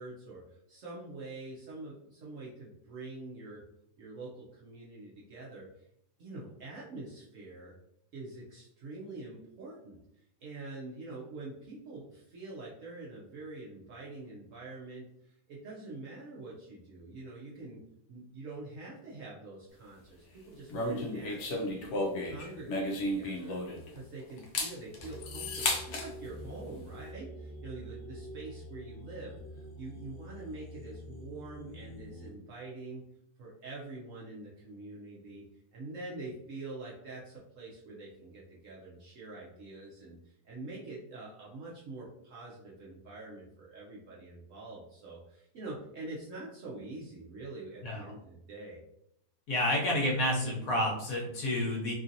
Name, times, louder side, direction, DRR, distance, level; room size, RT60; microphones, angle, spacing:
voice 1, 0.0-3.6 4.0-5.9 6.2-7.8 8.1-10.0 10.4-17.8 18.1-23.6 23.9-33.0 33.4-35.4 35.7-48.8, right 2 dB, 65° right, -5 dB, 0.8 m, -45 dB
sound 1, 20.7-24.0 24.4-26.1, left 1 dB, 80° left, 0.6 m, -33 dB
sound 2, 25.0-32.3, equal, 35° left, 0.4 m, -46 dB
voice 2, 49.5-51.9, left 1 dB, 60° left, -3 dB, 1.1 m, -29 dB
3.0 x 2.7 x 2.5 m, 0.77 s
omnidirectional pair, 1.8 m